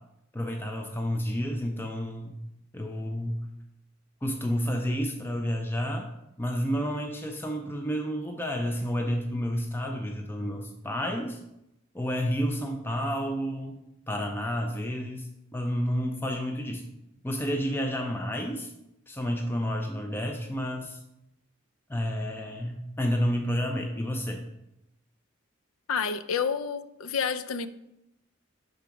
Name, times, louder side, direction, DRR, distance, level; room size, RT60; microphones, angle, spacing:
voice 1, 0.3-2.4 2.7-3.4 4.2-6.1 6.4-11.4 11.9-13.8 14.1-16.9 17.2-18.7 19.1-21.0 21.9-24.4, equal, 10° left, 0.5 m, -30 dB
voice 2, 25.9-27.7, left 6 dB, 85° left, 0.4 m, -29 dB
4.9 x 3.9 x 5.7 m
head